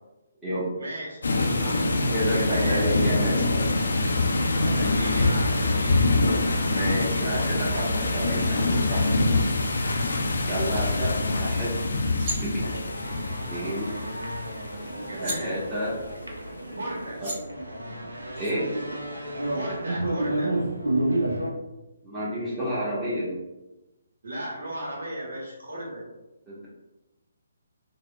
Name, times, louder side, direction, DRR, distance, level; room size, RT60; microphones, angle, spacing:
voice 1, 0.8-1.2 1.6-2.9 4.6-6.1 15.1-15.7 16.8-17.2 19.5-20.6 24.2-26.0, right 1 dB, 70° right, -4 dB, 0.9 m, -36 dB
sound 1, 1.2-15.8, left 2 dB, 70° left, 0.4 m, -25 dB
voice 2, 2.1-3.6 6.6-9.1 10.4-11.8 12.4-12.8 13.4-13.9 15.2-15.9 17.2-17.3 18.4-18.7 22.0-23.3 26.5-26.7, equal, 10° right, -9 dB, 0.9 m, -30 dB
sound 2, 10.7-10.9 11.8-11.9 12.1-12.4 14.3-14.4 14.7-15.4 16.8-16.9 17.2-17.4 18.3-18.5, right 1 dB, 40° right, 1.2 m, -35 dB
sound 3, 12.5-21.5, right 1 dB, 90° right, 0.5 m, -31 dB
3.4 x 2.0 x 2.2 m, 1.0 s
figure-of-eight pair, 140°, 0 cm